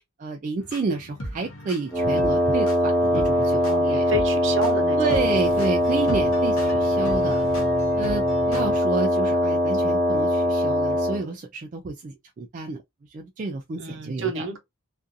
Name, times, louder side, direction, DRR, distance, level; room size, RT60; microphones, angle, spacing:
voice 1, 0.0-4.1 5.0-7.5 7.9-12.8 13.1-14.6, right 4 dB, 35° right, 0.3 m, -30 dB
sound 1, 0.6-8.8, equal, 70° left, 0.8 m, -36 dB
Wind instrument woodwind instrument, 1.9-11.3, equal, 10° left, 1.0 m, -22 dB
voice 2, 3.6-5.0 13.8-14.6, right 1 dB, 60° right, 0.8 m, -29 dB
2.5 x 2.3 x 2.5 m
head